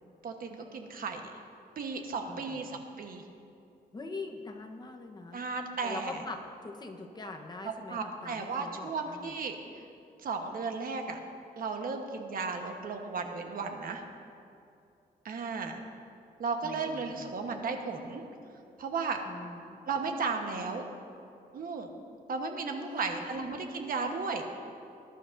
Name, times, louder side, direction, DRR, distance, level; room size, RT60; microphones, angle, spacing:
voice 1, 0.2-1.2 1.8-3.2 5.3-6.2 7.6-9.6 10.2-11.2 11.6-14.0 15.2-15.8 16.4-18.2 18.8-19.2 19.9-20.8 21.5-21.9 22.3-24.4, right 4 dB, 55° right, 4 dB, 1.2 m, -35 dB
voice 2, 2.3-2.8 3.9-5.4 5.8-9.3 16.6-17.3 19.2-19.8 22.8-23.4, left 3 dB, 25° left, 3 dB, 1.1 m, -43 dB
20.5 x 11.5 x 2.7 m, 2.6 s
cardioid pair, 135°, 17 cm